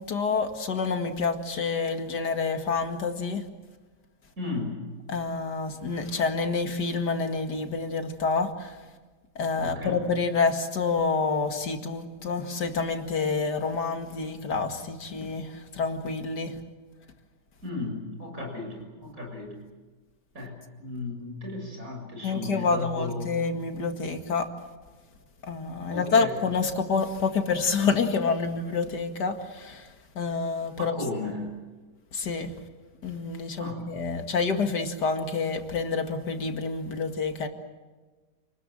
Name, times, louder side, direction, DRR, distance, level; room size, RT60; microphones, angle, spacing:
voice 1, 0.0-3.4 5.1-8.8 9.4-16.6 22.2-24.5 25.4-31.0 32.1-32.5 33.0-37.5, left 4 dB, 75° left, 6 dB, 2.6 m, -28 dB
voice 2, 4.4-4.8 9.6-10.0 17.6-19.5 20.3-23.5 25.9-26.3 30.8-31.5 33.6-33.8, left 2 dB, 50° right, 1 dB, 7.3 m, -35 dB
28.5 x 20.5 x 7.6 m, 1.3 s
omnidirectional pair, 1.8 m